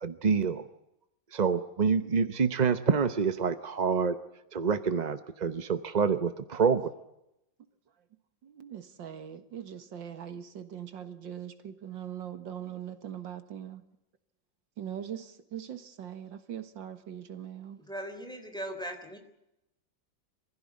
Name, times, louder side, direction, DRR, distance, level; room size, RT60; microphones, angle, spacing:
voice 1, 0.0-0.6 1.3-4.2 4.5-6.9, right 5 dB, 40° right, 0.6 m, -27 dB
voice 2, 8.4-13.8 14.8-17.8, right 9 dB, 80° right, 2.2 m, -41 dB
voice 3, 17.8-19.2, right 1 dB, ahead, 3.5 m, -39 dB
24.0 x 16.0 x 9.8 m
omnidirectional pair, 2.0 m